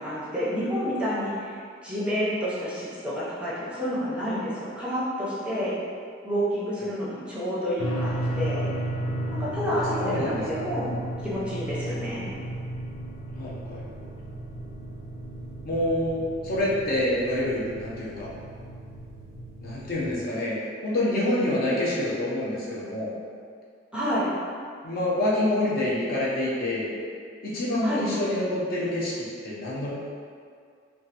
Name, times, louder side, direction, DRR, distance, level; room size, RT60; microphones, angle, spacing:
voice 1, 0.0-1.6 1.8-5.7 6.2-8.7 9.3-10.9 11.2-12.3 23.9-24.3 27.8-28.0, equal, 5° right, -9 dB, 0.6 m, -29 dB
sound 1, 7.8-20.1, right 1 dB, 90° left, 0.6 m, -34 dB
voice 2, 9.6-10.7 11.8-12.0 13.4-13.8 15.6-18.3 19.6-23.1 24.8-26.9 27.4-29.9, left 1 dB, 50° left, -7 dB, 0.6 m, -27 dB
3.1 x 2.3 x 2.8 m, 2.2 s
head